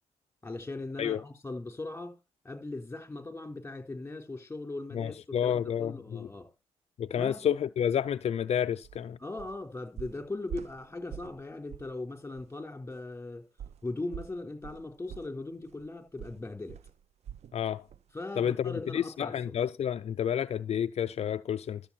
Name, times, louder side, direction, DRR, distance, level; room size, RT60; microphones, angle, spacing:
voice 1, 0.4-2.2 2.4-6.5 7.1-7.4 9.2-13.5 13.8-16.8 18.1-19.5, left 2 dB, 15° left, 4.3 m, -39 dB
voice 2, 4.9-6.3 7.0-9.2 17.5-17.8 18.4-21.8, left 9 dB, 60° left, 0.5 m, -30 dB
sound 1, 8.8-9.0 9.4-9.6 10.0-11.4 11.7-12.0 12.4-12.5 13.6-17.6 17.9-18.1 18.5-18.6, right 9 dB, 65° right, 0.6 m, -45 dB
13.0 x 7.9 x 4.3 m
cardioid pair, 70°, 12 cm